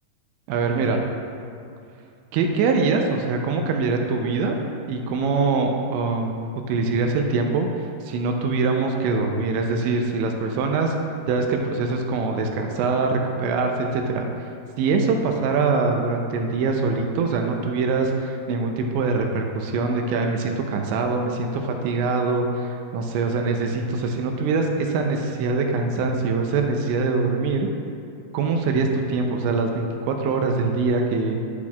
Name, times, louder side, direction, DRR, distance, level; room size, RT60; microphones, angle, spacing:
voice 1, 0.5-1.0 2.3-4.6 4.9-6.3 6.7-10.9 11.3-14.3 14.8-27.7 28.3-31.4, right 4 dB, 85° right, 3 dB, 2.9 m, -23 dB
10.0 x 8.7 x 2.4 m, 2.5 s
omnidirectional pair, 5.1 m